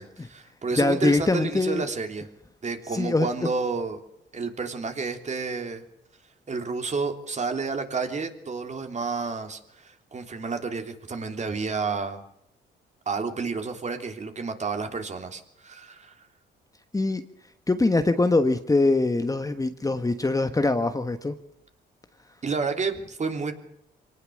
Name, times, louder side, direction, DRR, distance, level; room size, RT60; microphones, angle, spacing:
voice 1, 0.0-2.3 2.6-4.0 4.3-5.8 6.5-12.2 13.0-16.1 22.4-23.5, right 4 dB, 35° right, 5 dB, 3.3 m, -30 dB
voice 2, 0.8-1.8 2.9-3.3 16.9-17.2 17.7-21.3, left 2 dB, 15° left, 8 dB, 1.4 m, -23 dB
24.5 x 18.5 x 6.5 m, 0.73 s
cardioid pair, 90°, 20 cm